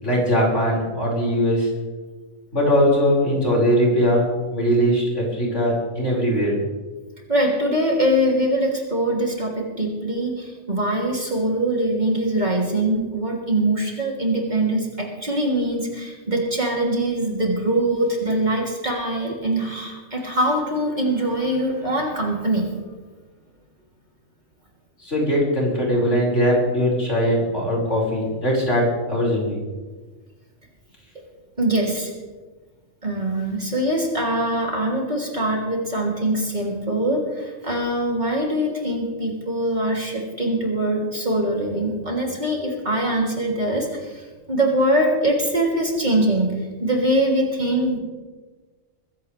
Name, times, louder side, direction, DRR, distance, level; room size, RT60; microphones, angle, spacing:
voice 1, 0.0-1.7 2.5-6.6 25.0-29.7, equal, 60° left, -4 dB, 5.9 m, -20 dB
voice 2, 7.3-22.7 31.6-32.1 33.0-44.2 44.5-46.5 46.8-48.0, right 1 dB, 35° right, -2 dB, 3.2 m, -23 dB
22.0 x 15.5 x 3.4 m, 1.3 s
omnidirectional pair, 1.4 m